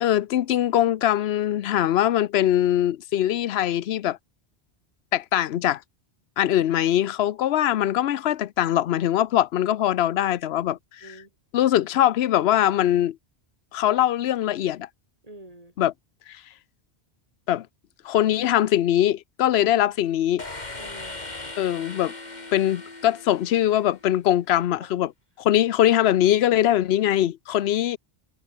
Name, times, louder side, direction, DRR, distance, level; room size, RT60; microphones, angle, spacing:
voice 1, 0.0-4.2 5.1-5.8 6.4-11.1 11.5-13.2 13.7-14.9 15.8-15.9 17.5-17.7 18.0-20.5 21.6-22.1 22.5-25.1 25.4-28.0, left 12 dB, 75° left, 0.9 m, -22 dB
voice 2, 10.6-11.3 15.2-15.7 20.5-21.2 24.5-25.1, right 1 dB, 35° right, 3.6 m, -48 dB
sound 1, 20.4-24.2, left 2 dB, 40° left, 2.7 m, -39 dB
omnidirectional pair, 1.1 m